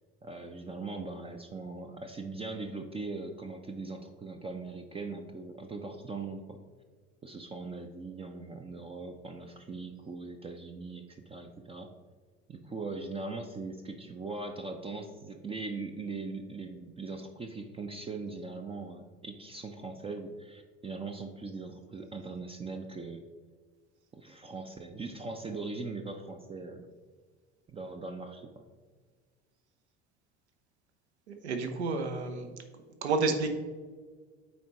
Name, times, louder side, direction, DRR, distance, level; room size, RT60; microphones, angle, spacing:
voice 1, 0.2-6.6 7.2-11.9 12.5-23.2 24.1-26.9 27.7-28.7, right 3 dB, 15° right, 5 dB, 0.5 m, -40 dB
voice 2, 31.3-32.6 33.0-33.5, right 3 dB, 75° right, 6 dB, 0.8 m, -30 dB
9.3 x 4.2 x 3.0 m, 1.5 s
figure-of-eight pair, 65°, 34 cm